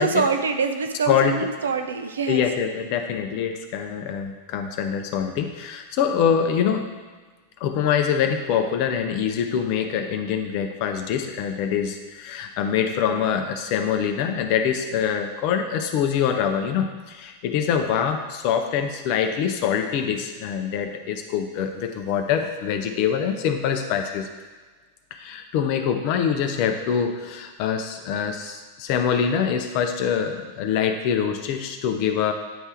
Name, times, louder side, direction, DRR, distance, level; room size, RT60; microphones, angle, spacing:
voice 1, 0.0-2.4, right 5 dB, 70° right, 6 dB, 0.5 m, -25 dB
voice 2, 2.3-6.9 7.6-24.3 25.1-32.3, left 8 dB, 45° left, 6 dB, 0.6 m, -24 dB
9.0 x 3.4 x 4.5 m, 1.4 s
figure-of-eight pair, 90°, 0 cm